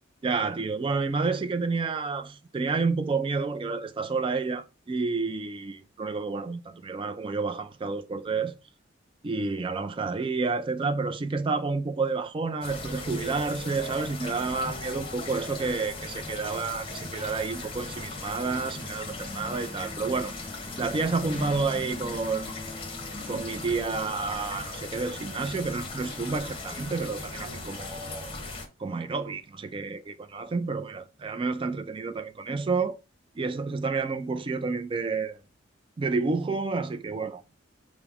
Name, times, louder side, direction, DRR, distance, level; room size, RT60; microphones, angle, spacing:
voice 1, 0.2-8.5 9.2-20.3 20.8-22.5 23.3-28.3 28.8-33.0 33.4-35.4 36.0-37.6, right 4 dB, 25° right, 0.3 m, -30 dB
sound 1, 12.6-28.7, left 2 dB, 30° left, 0.8 m, -38 dB
5.7 x 2.0 x 3.4 m
head